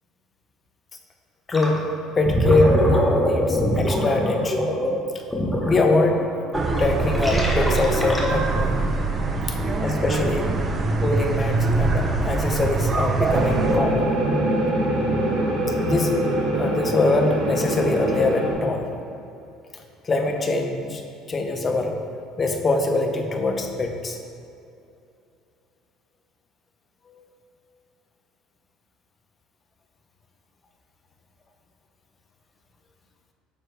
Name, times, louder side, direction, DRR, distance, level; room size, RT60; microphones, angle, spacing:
voice 1, 1.5-1.9 2.1-4.7 5.6-6.2 6.8-8.9 9.5-10.5 11.0-14.1 15.8-16.1 16.6-18.9 20.0-21.9 22.4-24.2 27.1-27.2, left 2 dB, 25° left, 4 dB, 0.8 m, -23 dB
Gurgling, 1.5-1.8 2.1-8.6, equal, 5° left, 1.1 m, -24 dB
sound 1, 6.5-13.8, right 3 dB, 25° right, 0.6 m, -23 dB
sound 2, 13.3-18.5, right 1 dB, 80° right, 1.7 m, -23 dB
9.3 x 6.5 x 3.3 m, 2.7 s
cardioid pair, 140°, 0 cm